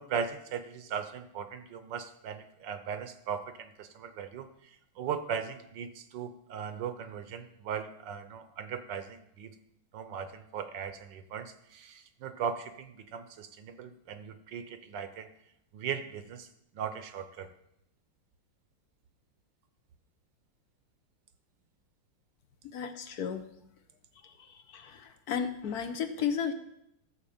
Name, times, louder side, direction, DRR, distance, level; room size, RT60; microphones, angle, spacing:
voice 1, 0.0-9.5 9.9-15.3 15.7-16.5 16.7-17.5, right 7 dB, 70° right, 10 dB, 1.3 m, -38 dB
voice 2, 22.7-23.5 24.2-26.5, left 7 dB, 60° left, 9 dB, 1.1 m, -34 dB
13.5 x 4.8 x 7.1 m, 0.80 s
omnidirectional pair, 2.2 m